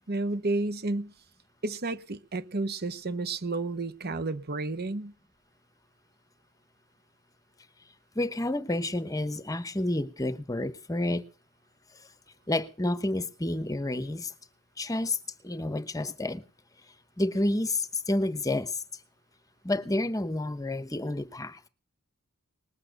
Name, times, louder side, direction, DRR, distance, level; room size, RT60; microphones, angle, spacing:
voice 1, 0.1-1.1 1.6-5.1, right 2 dB, 45° right, 1.0 m, -31 dB
voice 2, 8.1-11.2 12.5-14.3 14.8-15.2 15.4-16.4 17.2-18.8 19.6-21.6, left 1 dB, 15° left, 1.0 m, -29 dB
20.0 x 8.5 x 6.5 m
head